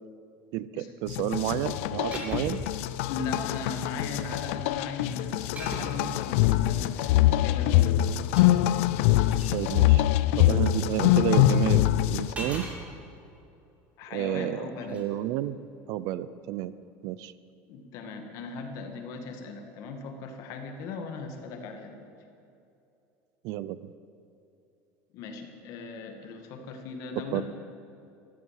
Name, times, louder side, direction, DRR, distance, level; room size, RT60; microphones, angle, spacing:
voice 1, 0.5-2.6 9.5-10.1 10.3-12.7 14.1-15.6 15.9-16.7 17.0-17.3 23.4-23.8 27.3-27.4, right 13 dB, 60° right, 16 dB, 0.6 m, -30 dB
sound 1, 1.1-12.3, left 14 dB, 80° left, 0.5 m, -24 dB
sound 2, 2.1-2.8 3.7-4.1 5.6-6.1 7.8-9.6 12.3-12.8 14.8-15.0, right 1 dB, 20° right, 3.1 m, -39 dB
voice 2, 3.1-8.5 14.0-15.1 17.7-22.1 25.1-27.5, left 4 dB, 55° left, 4 dB, 2.1 m, -38 dB
14.0 x 11.5 x 7.6 m, 2.7 s
cardioid pair, 150°, 7 cm